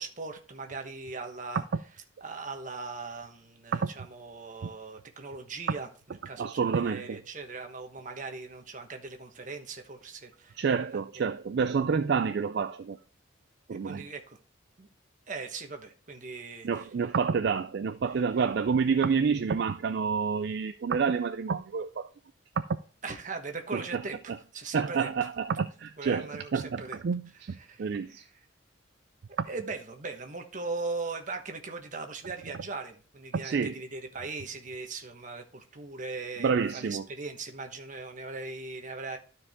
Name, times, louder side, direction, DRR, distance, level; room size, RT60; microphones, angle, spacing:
voice 1, 0.0-1.6 2.2-5.9 6.2-10.6 10.9-11.0 13.8-14.4 14.8-14.9 15.3-16.7 23.0-25.1 26.0-27.0 27.6-28.3 29.3-39.2, right 3 dB, 40° right, 1.2 m, -39 dB
voice 2, 6.4-7.2 10.5-13.0 13.7-14.1 16.6-22.1 22.7-22.8 23.7-24.0 24.7-28.2 29.4-29.5 33.3-33.8 36.4-37.1, right 5 dB, 55° right, 0.4 m, -28 dB
12.5 x 4.7 x 3.6 m
head